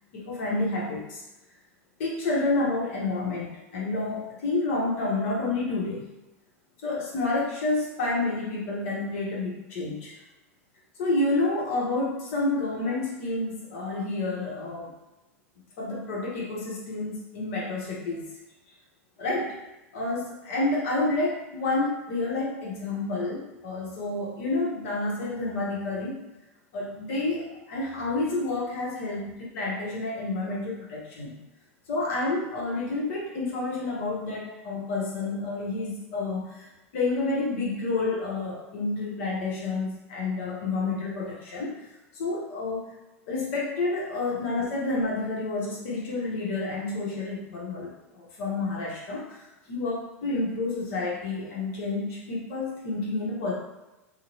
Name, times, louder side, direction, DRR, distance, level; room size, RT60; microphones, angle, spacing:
voice 1, 0.1-1.2 2.0-6.0 6.8-10.1 11.0-14.9 15.8-18.2 19.2-19.5 19.9-26.2 26.7-31.4 31.9-36.7 36.9-41.8 42.1-42.8 43.3-53.5, left 2 dB, 60° left, -4 dB, 0.9 m, -29 dB
2.5 x 2.1 x 3.0 m, 0.98 s
hypercardioid pair, 100°, 8 cm